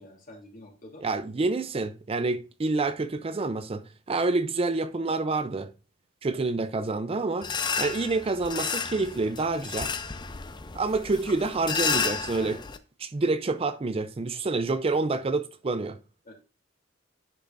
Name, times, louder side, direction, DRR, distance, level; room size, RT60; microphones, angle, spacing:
voice 1, 0.0-1.1 16.2-16.3, left 1 dB, 45° left, 2.8 m, -47 dB
voice 2, 1.0-3.8 4.1-5.7 6.2-7.5 7.8-9.9 10.7-12.6 13.0-16.0, right 3 dB, 30° right, 0.4 m, -27 dB
sound 1, 7.4-12.8, left 5 dB, 25° left, 0.5 m, -32 dB
10.5 x 5.6 x 2.5 m
head